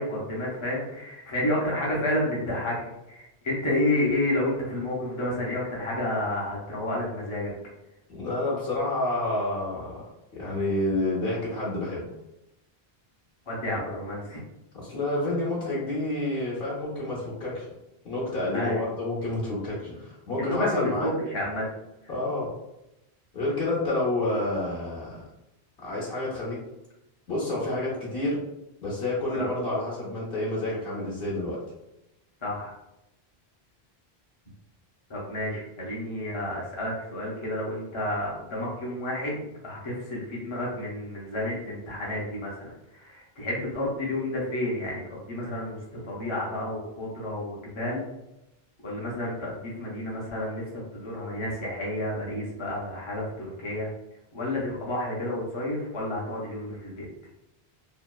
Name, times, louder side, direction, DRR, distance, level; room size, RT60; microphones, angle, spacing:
voice 1, 0.0-7.5 13.5-14.4 18.5-18.8 20.4-21.7 29.3-29.5 32.4-32.7 35.1-48.0 48.8-53.9 54.3-57.1, left 1 dB, 35° left, -5 dB, 0.5 m, -30 dB
voice 2, 8.1-10.0 10.3-12.0 13.9-14.0 14.7-17.7 18.0-21.1 22.1-22.5 23.3-25.2 25.8-26.6 27.3-28.4 28.8-31.6, left 2 dB, 65° left, -5 dB, 0.9 m, -29 dB
2.8 x 2.1 x 2.2 m, 0.90 s
omnidirectional pair, 1.0 m